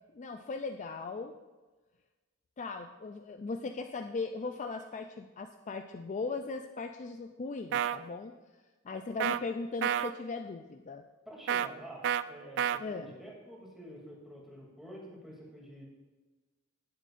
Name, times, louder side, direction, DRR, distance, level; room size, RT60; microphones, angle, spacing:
voice 1, 0.1-1.3 2.6-8.3 8.8-11.1 12.8-13.1, left 4 dB, 35° left, 6 dB, 0.4 m, -38 dB
sound 1, 7.7-8.0 9.2-9.4 9.8-10.1 11.5-11.7 12.0-12.2 12.6-12.8, right 9 dB, 60° right, 0.3 m, -29 dB
voice 2, 11.2-15.9, equal, ahead, -4 dB, 2.8 m, -48 dB
17.5 x 7.5 x 2.6 m, 1.3 s
head